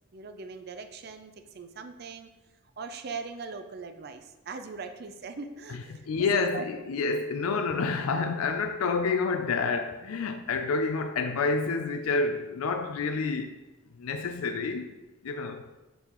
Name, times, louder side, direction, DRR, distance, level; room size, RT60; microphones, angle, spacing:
voice 1, 0.1-2.3 2.8-6.6, right 4 dB, 45° right, 0.5 m, -40 dB
voice 2, 5.7-13.6 14.0-14.9 15.2-15.7, left 4 dB, 80° left, 0.4 m, -29 dB
6.4 x 5.3 x 3.0 m
head